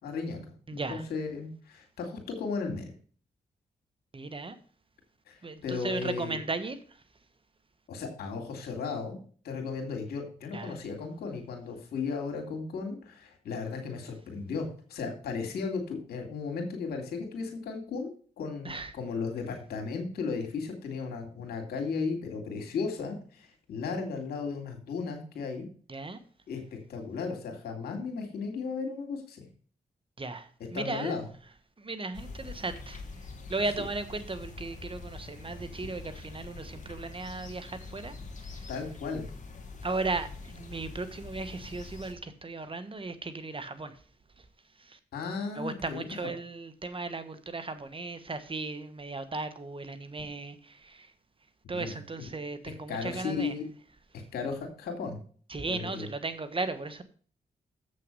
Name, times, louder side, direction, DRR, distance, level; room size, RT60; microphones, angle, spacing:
voice 1, 0.0-2.9 5.3-6.4 7.9-9.2 9.4-25.7 26.5-29.4 30.7-31.3 38.7-39.2 45.1-46.0 51.7-52.0 52.9-53.6 54.3-55.2 55.7-56.1, left 5 dB, 85° left, 3 dB, 2.4 m, -35 dB
voice 2, 0.7-1.0 4.1-4.6 5.4-6.8 10.5-10.7 18.6-18.9 25.9-26.2 30.2-31.2 31.8-33.0 33.5-38.1 38.5-38.6 39.8-44.0 44.8-45.0 45.5-51.1 51.7-53.5 55.5-57.0, right 3 dB, 35° right, 11 dB, 1.3 m, -36 dB
sound 1, 32.1-42.1, left 3 dB, 50° left, 2.1 m, -44 dB
7.6 x 6.6 x 5.4 m, 0.43 s
supercardioid pair, 55°, 16 cm